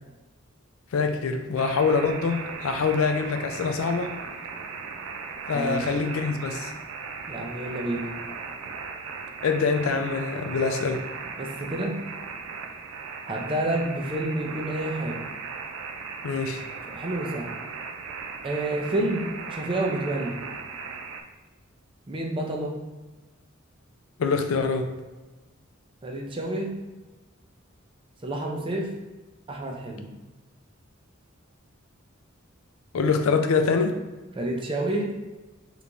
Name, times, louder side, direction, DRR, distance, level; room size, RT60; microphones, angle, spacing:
voice 1, 0.9-4.1 5.5-6.7 9.4-11.0 16.2-16.6 24.2-24.9 32.9-34.0, left 4 dB, 80° left, 6 dB, 0.4 m, -25 dB
sound 1, 1.6-21.2, right 5 dB, 80° right, 0.4 m, -37 dB
voice 2, 7.3-8.1 11.4-12.0 13.3-15.2 16.8-17.5 18.4-20.4 22.1-22.8 26.0-26.7 28.2-28.9 29.5-30.1 34.4-35.1, right 1 dB, 25° right, 1 dB, 0.5 m, -29 dB
3.4 x 3.0 x 2.6 m, 1.1 s
head